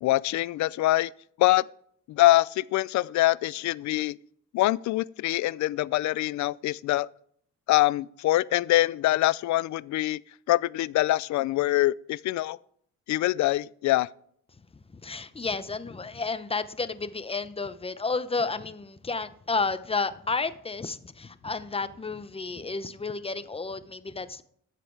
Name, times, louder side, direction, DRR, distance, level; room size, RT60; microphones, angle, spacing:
voice 1, 0.0-1.1 1.4-1.7 2.1-4.2 4.5-7.1 7.7-10.2 10.5-12.6 13.1-14.1, left 16 dB, 70° left, 0.4 m, -24 dB
voice 2, 14.9-24.4, left 4 dB, 20° left, 0.8 m, -31 dB
13.0 x 7.6 x 4.7 m
cardioid pair, 90°, 30 cm